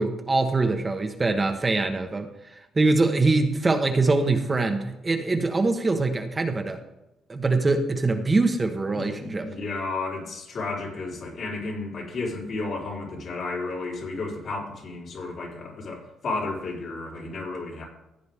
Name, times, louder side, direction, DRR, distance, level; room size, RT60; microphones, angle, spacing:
voice 1, 0.0-2.3 2.7-6.8 7.3-9.5, right 3 dB, 25° right, 5 dB, 1.2 m, -23 dB
voice 2, 8.9-17.8, left 3 dB, 60° left, -3 dB, 4.2 m, -32 dB
15.5 x 9.0 x 3.6 m, 0.91 s
cardioid pair, 90°, 0 cm